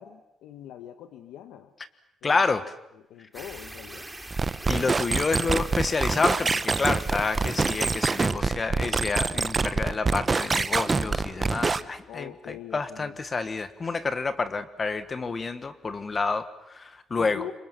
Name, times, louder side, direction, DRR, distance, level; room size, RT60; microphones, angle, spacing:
voice 1, 0.0-1.7 2.2-2.4 3.1-4.1 12.1-13.2 17.2-17.5, left 10 dB, 85° left, 9 dB, 1.2 m, -42 dB
voice 2, 2.2-2.6 4.7-17.5, left 4 dB, 35° left, 12 dB, 1.4 m, -29 dB
sound 1, 3.3-8.3, right 1 dB, 5° right, 2.8 m, -42 dB
sound 2, 4.3-11.8, right 4 dB, 30° right, 0.9 m, -26 dB
Toilet flush, 6.0-12.0, left 3 dB, 60° left, 8.0 m, -53 dB
26.5 x 24.0 x 7.6 m, 0.89 s
cardioid pair, 90°, 0 cm